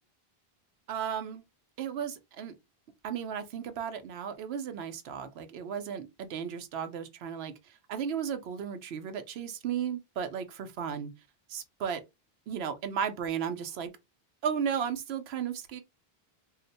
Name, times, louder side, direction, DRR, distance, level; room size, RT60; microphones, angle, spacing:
voice 1, 0.9-1.4 1.8-2.5 3.0-7.5 7.9-11.1 11.5-12.0 12.5-13.9 14.4-15.8, right 7 dB, 85° right, 0.9 m, -34 dB
2.4 x 2.1 x 3.9 m
omnidirectional pair, 1.0 m